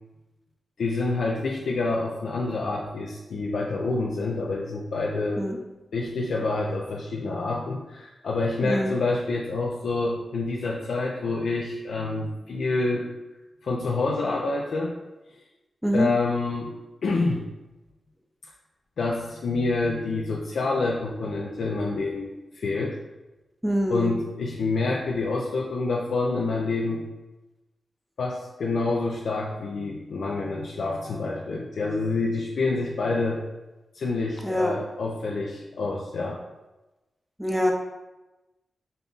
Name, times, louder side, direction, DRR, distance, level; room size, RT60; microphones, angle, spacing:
voice 1, 0.8-5.4 5.9-13.1 13.6-14.9 15.9-16.7 17.0-17.4 19.0-23.0 23.9-27.0 28.2-33.4 33.9-36.4, left 3 dB, 80° left, -2 dB, 0.5 m, -27 dB
voice 2, 8.6-9.0 15.8-16.1 23.6-24.1 34.4-34.7 37.4-37.7, equal, 5° right, 1 dB, 0.6 m, -24 dB
5.3 x 2.3 x 3.9 m, 1.0 s
wide cardioid pair, 90°, 0 cm